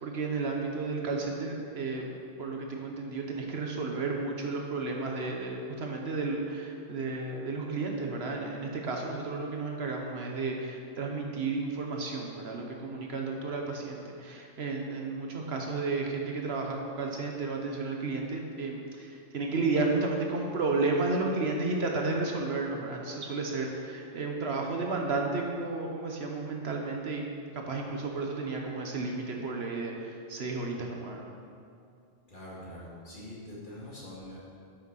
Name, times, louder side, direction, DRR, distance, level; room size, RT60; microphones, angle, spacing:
voice 1, 0.0-2.1 2.4-19.1 19.3-27.2 27.5-31.2, right 3 dB, 60° right, 1 dB, 1.1 m, -32 dB
voice 2, 32.3-34.4, left 1 dB, 40° left, -6 dB, 2.2 m, -44 dB
8.3 x 6.2 x 5.6 m, 2.5 s
omnidirectional pair, 1.2 m